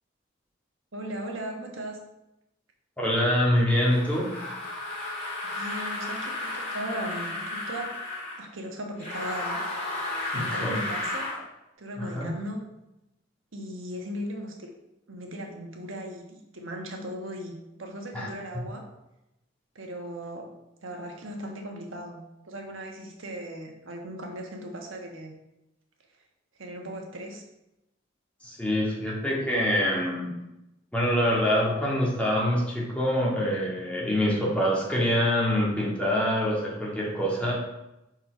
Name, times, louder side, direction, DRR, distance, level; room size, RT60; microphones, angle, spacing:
voice 1, 0.9-2.0 5.4-7.9 8.3-9.6 10.3-11.3 11.8-12.6 13.5-14.7 15.1-18.8 19.7-20.5 20.8-25.3 26.6-27.4, right 1 dB, 80° right, 2 dB, 1.3 m, -37 dB
voice 2, 3.0-4.3 10.3-10.8 12.0-12.3 18.1-18.3 28.4-30.3 30.9-37.5, equal, 5° left, -5 dB, 1.9 m, -25 dB
sound 1, 3.8-8.4 9.0-11.4, left 2 dB, 35° left, 2.5 m, -33 dB
5.6 x 4.4 x 5.2 m, 0.91 s
head